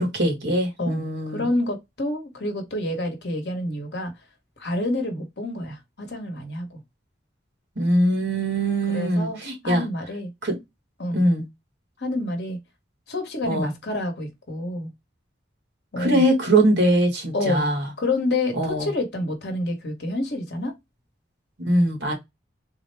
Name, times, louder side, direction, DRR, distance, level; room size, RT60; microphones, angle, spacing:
voice 1, 0.0-1.5 7.8-9.9 10.4-10.6 11.1-11.4 13.5-13.7 16.0-17.9 18.6-18.9 21.6-22.1, right 1 dB, 70° right, 1.3 m, -22 dB
voice 2, 0.8-4.1 4.6-6.8 8.9-9.4 9.6-10.3 11.0-11.2 12.0-12.6 13.1-14.9 15.9-16.3 17.3-17.7 18.0-20.7, left 2 dB, 65° left, 1.0 m, -28 dB
3.7 x 2.0 x 3.2 m
head